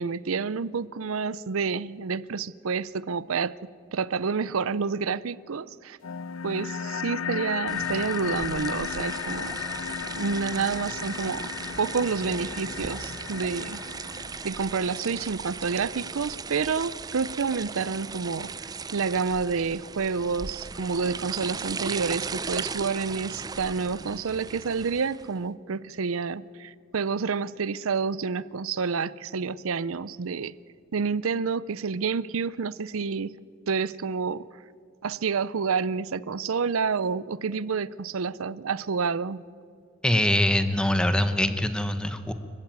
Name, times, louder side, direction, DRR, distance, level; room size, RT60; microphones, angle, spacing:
voice 1, 0.0-3.6 3.9-6.0 6.4-9.6 10.2-11.5 11.8-13.8 14.4-30.5 30.9-33.3 33.7-34.5 35.0-39.4, right 5 dB, 90° right, 0.6 m, -29 dB
sound 1, 6.0-15.0, left 7 dB, 85° left, 0.6 m, -35 dB
sound 2, 7.7-25.4, right 4 dB, 20° right, 0.5 m, -37 dB
voice 2, 40.0-42.3, left 1 dB, 5° left, 1.1 m, -23 dB
24.5 x 15.0 x 9.4 m
head